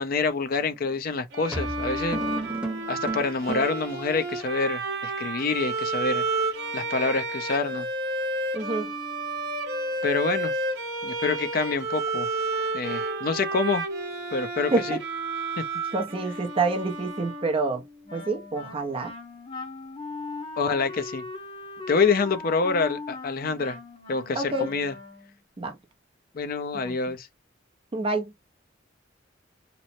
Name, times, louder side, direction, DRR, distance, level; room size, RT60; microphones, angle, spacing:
voice 1, 0.0-2.2 2.9-6.2 6.7-7.9 10.0-10.6 11.0-12.3 12.7-13.9 14.3-15.0 15.6-15.7 20.6-21.2 21.9-23.8 24.1-24.9 26.3-27.3, left 4 dB, 50° left, 0.5 m, -26 dB
sound 1, 0.7-0.9 1.5-3.9, right 2 dB, 5° right, 0.9 m, -33 dB
Bowed string instrument, 1.3-17.9, right 3 dB, 55° right, 0.8 m, -31 dB
voice 2, 8.5-8.9 14.7-15.0 15.9-17.8 18.1-19.1 24.3-24.7 25.6-25.8 26.8-26.9 27.9-28.3, right 3 dB, 30° right, 0.5 m, -27 dB
Wind instrument woodwind instrument, 18.0-25.4, left 3 dB, 30° left, 0.9 m, -39 dB
3.0 x 2.0 x 2.6 m
head